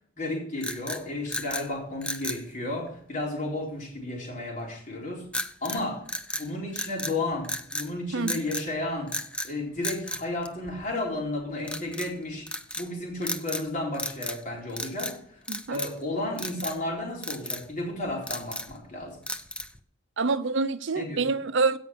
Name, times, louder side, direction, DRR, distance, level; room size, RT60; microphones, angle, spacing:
voice 1, 0.2-5.3 5.6-6.0 6.3-9.1 9.4-12.5 12.8-15.4 15.7-19.2 21.0-21.2, left 2 dB, 40° left, 4.1 m, -33 dB
sound 1, 0.6-1.7 2.0-2.4 5.3-5.8 6.1-7.2 7.4-7.9 8.3-8.7 9.1-9.5 9.8-11.0 11.6-12.1 12.5-12.9 13.2-13.7 13.9-14.4 14.7-15.2 15.5-16.0 16.4-16.8 17.2-17.6 18.1-18.8 19.3-19.8, left 1 dB, 5° left, 0.6 m, -34 dB
voice 2, 20.2-21.8, right 4 dB, 60° right, 0.6 m, -26 dB
16.5 x 5.7 x 6.0 m
head